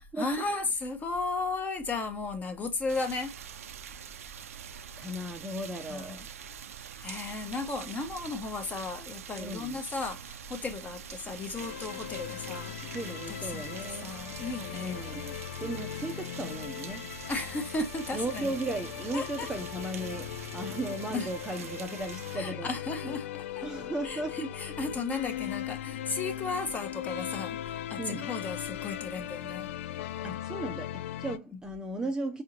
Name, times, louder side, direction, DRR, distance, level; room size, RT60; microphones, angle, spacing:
voice 1, 0.2-3.3 5.9-6.2 7.0-13.0 13.3-15.2 17.3-18.5 19.1-19.5 21.1-21.3 22.3-23.6 24.0-29.7, left 3 dB, 20° left, 1.1 m, -35 dB
sound 1, 2.9-22.4, right 8 dB, 75° right, 0.6 m, -45 dB
voice 2, 5.0-6.2 9.4-9.8 12.9-14.2 14.7-15.3 15.6-17.1 18.1-22.7 23.0-23.1 23.6-24.4 28.0-28.3 30.2-32.4, right 1 dB, 10° right, 0.8 m, -36 dB
sound 2, 11.5-31.4, left 12 dB, 60° left, 0.4 m, -39 dB
4.8 x 3.6 x 2.8 m
figure-of-eight pair, 95°, 8 cm